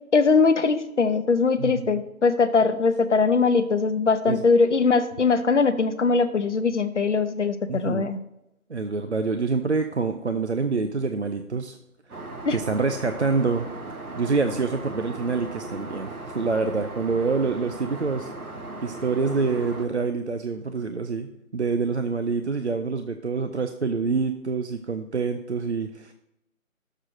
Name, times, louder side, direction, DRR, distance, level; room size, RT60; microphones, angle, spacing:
voice 1, 0.1-8.2 12.5-12.6, left 4 dB, 55° left, 11 dB, 0.7 m, -21 dB
voice 2, 1.6-2.0 4.3-4.4 7.7-8.1 8.7-11.8 12.1-12.2 12.5-13.7 14.2-18.3 18.8-26.1, right 4 dB, 55° right, 7 dB, 0.5 m, -26 dB
Aircraft, 12.1-19.9, right 2 dB, 85° right, 1.4 m, -37 dB
6.7 x 6.1 x 4.5 m, 0.88 s
figure-of-eight pair, 165°, 43 cm